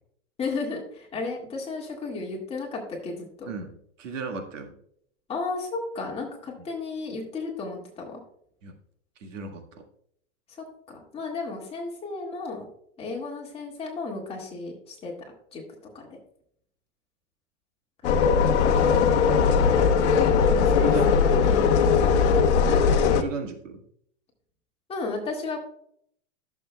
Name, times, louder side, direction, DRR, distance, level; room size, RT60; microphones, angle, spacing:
voice 1, 0.4-3.5 5.3-8.2 10.6-12.7 13.0-15.1 15.5-15.6 15.9-16.1 18.0-18.3 19.3-22.2 22.6-22.8 24.9-25.6, left 3 dB, 15° left, -1 dB, 1.9 m, -34 dB
voice 2, 3.5-4.8 8.6-8.7 9.2-9.8 20.8-21.5 22.5-22.7 23.1-23.8, right 4 dB, 90° right, 4 dB, 1.8 m, -36 dB
sound 1, 18.0-23.2, left 6 dB, 65° left, 0.9 m, -20 dB
14.0 x 7.0 x 2.2 m, 0.67 s
hypercardioid pair, 145°, 36 cm